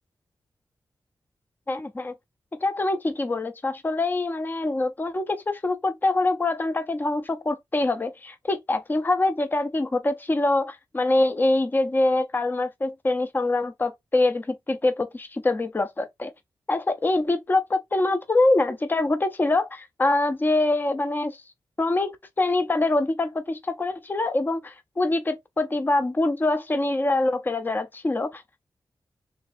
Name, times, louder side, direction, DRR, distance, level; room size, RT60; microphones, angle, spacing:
voice 1, 1.7-2.2 2.6-16.3 16.7-21.4 21.8-28.6, left 2 dB, 20° left, 0.5 m, -24 dB
3.6 x 2.8 x 3.2 m
wide cardioid pair, 95°, 9 cm